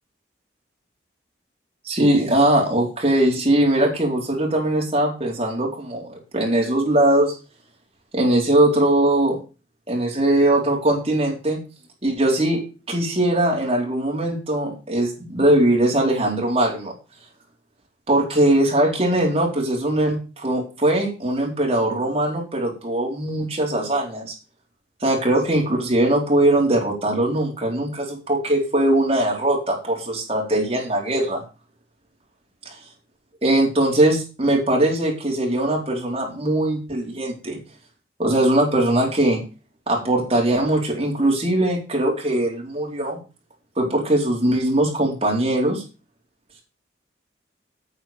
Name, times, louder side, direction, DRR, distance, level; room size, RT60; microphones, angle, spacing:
voice 1, 1.8-7.4 8.1-9.4 9.9-11.6 12.0-12.6 12.9-16.9 18.1-24.3 25.0-31.4 32.7-32.8 33.4-37.6 38.2-39.4 39.9-43.2 43.8-45.8, right 1 dB, 30° right, -1 dB, 4.2 m, -20 dB
9.2 x 7.0 x 7.6 m, 0.33 s
head